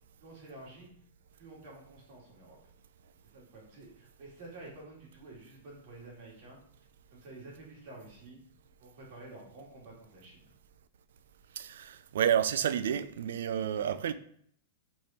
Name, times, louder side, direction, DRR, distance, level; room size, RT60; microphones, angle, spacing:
voice 1, 0.2-0.9 1.3-2.6 3.3-6.6 7.1-8.4 8.8-10.5, right 2 dB, 55° right, 2.6 m, -50 dB
voice 2, 11.6-14.1, right 9 dB, 75° right, 0.4 m, -30 dB
5.1 x 4.3 x 4.3 m
hypercardioid pair, 135°, 0 cm